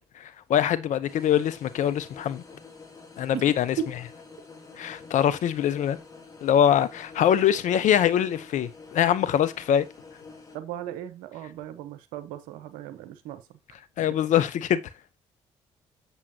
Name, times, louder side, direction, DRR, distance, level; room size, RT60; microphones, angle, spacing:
voice 1, 0.2-2.4 3.2-3.8 4.8-6.0 6.4-9.9 14.0-14.8, left 10 dB, 65° left, 0.9 m, -23 dB
sound 1, 1.1-10.6, left 4 dB, 25° left, 3.6 m, -48 dB
voice 2, 10.5-13.6 14.0-14.1, right 12 dB, 75° right, 1.0 m, -38 dB
8.2 x 7.4 x 2.8 m
hypercardioid pair, 45°, 14 cm